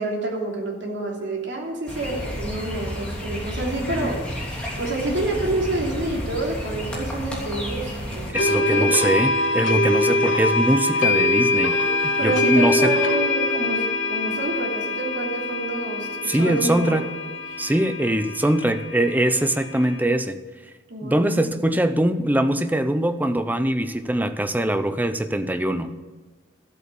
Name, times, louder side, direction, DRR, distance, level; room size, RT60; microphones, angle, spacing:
voice 1, 0.0-4.3 4.8-8.9 12.2-17.0 17.5-17.6 20.9-21.5, right 2 dB, 75° right, -1 dB, 3.0 m, -28 dB
sound 1, 1.9-8.3, equal, 5° left, 3.0 m, -31 dB
voice 2, 3.8-4.2 8.3-12.9 16.3-17.1 17.6-20.4 21.0-25.9, right 1 dB, 10° right, 10 dB, 0.6 m, -22 dB
sound 2, 8.3-20.0, left 2 dB, 90° left, 1.7 m, -23 dB
13.0 x 8.1 x 6.9 m, 1.3 s
head